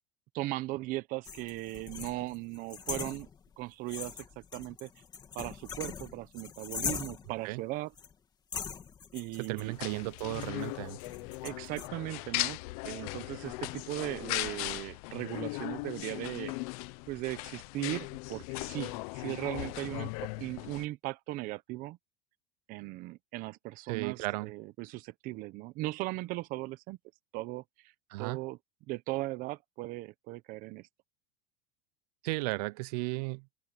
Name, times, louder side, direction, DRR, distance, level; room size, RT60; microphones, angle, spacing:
voice 1, 0.3-3.3 3.6-4.9 5.3-7.9 9.1-10.1 11.4-12.6 12.8-16.5 17.1-22.0 22.7-27.0 27.3-27.9 28.2-28.6 28.9-30.9, right 19 dB, 45° right, 0.8 m, -38 dB
sound 1, 1.2-3.6 3.9-7.4 8.0-8.1 8.5-11.9, left 6 dB, 20° left, 3.0 m, -41 dB
voice 2, 9.4-11.0 23.9-24.5 28.1-28.4 32.2-33.5, right 23 dB, 75° right, 0.7 m, -35 dB
sound 2, 9.6-20.8, left 23 dB, 65° left, 0.8 m, -38 dB
open air
supercardioid pair, 155°, 20 cm